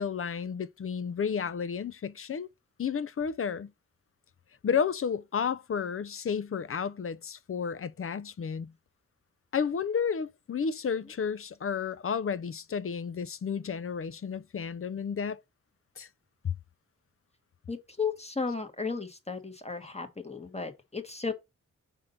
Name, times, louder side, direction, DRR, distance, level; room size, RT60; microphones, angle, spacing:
voice 1, 0.0-2.5 2.8-3.7 4.6-8.7 9.5-15.4 16.0-16.1 16.4-16.5, left 6 dB, 45° left, 0.5 m, -32 dB
voice 2, 17.7-21.3, left 5 dB, 20° left, 1.3 m, -34 dB
5.2 x 3.7 x 5.6 m
cardioid pair, 65°, 31 cm